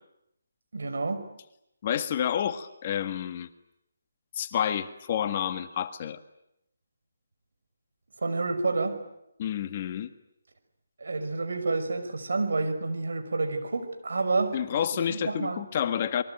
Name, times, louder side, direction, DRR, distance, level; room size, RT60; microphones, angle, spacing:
voice 1, 0.7-1.3 8.2-9.0 11.0-14.6 14.9-15.6, right 3 dB, 70° right, 8 dB, 5.7 m, -29 dB
voice 2, 1.8-3.5 4.3-6.2 9.4-10.1 14.5-16.2, left 9 dB, 35° left, 10 dB, 1.7 m, -29 dB
28.0 x 22.5 x 9.3 m, 0.82 s
figure-of-eight pair, 155°, 0 cm